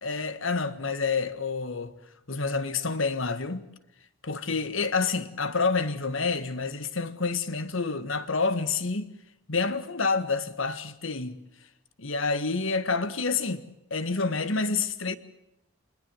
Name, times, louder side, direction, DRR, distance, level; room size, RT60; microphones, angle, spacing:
voice 1, 0.0-1.9 2.3-3.6 4.2-9.1 9.5-11.4 12.0-13.6 13.9-15.2, left 4 dB, 65° left, 1.6 m, -28 dB
27.5 x 21.0 x 7.7 m
head